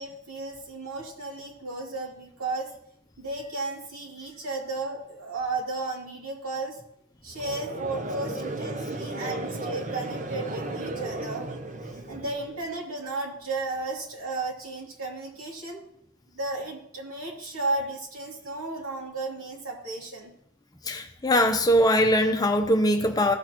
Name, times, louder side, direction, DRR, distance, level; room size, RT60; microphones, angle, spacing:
voice 1, 0.0-2.7 3.2-6.8 7.2-11.5 12.1-15.8 16.3-20.3, right 2 dB, 90° right, -1 dB, 2.6 m, -34 dB
Conversation / Crowd, 7.4-12.7, right 2 dB, 35° right, 0.7 m, -34 dB
voice 2, 20.9-23.3, equal, 20° left, 6 dB, 0.7 m, -21 dB
16.0 x 6.4 x 3.0 m, 0.71 s
head